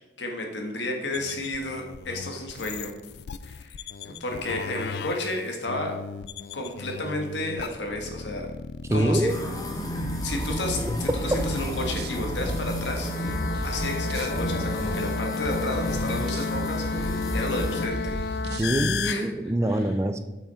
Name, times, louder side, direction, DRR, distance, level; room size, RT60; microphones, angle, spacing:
voice 1, 0.0-2.9 3.4-5.9 6.5-8.5 8.9-9.3 10.2-13.1 13.6-18.1 19.0-19.3 19.7-19.8, left 1 dB, 80° left, 2 dB, 1.6 m, -32 dB
sound 1, 1.1-19.1, left 5 dB, 60° left, 0.3 m, -35 dB
voice 2, 8.9-9.3 11.3-11.4 18.5-20.2, right 1 dB, 15° right, 9 dB, 0.4 m, -24 dB
sound 2, 9.3-17.9, equal, 20° left, 1.0 m, -33 dB
sound 3, 10.0-18.7, right 1 dB, 65° right, 0.8 m, -34 dB
8.3 x 5.9 x 4.4 m, 1.1 s
head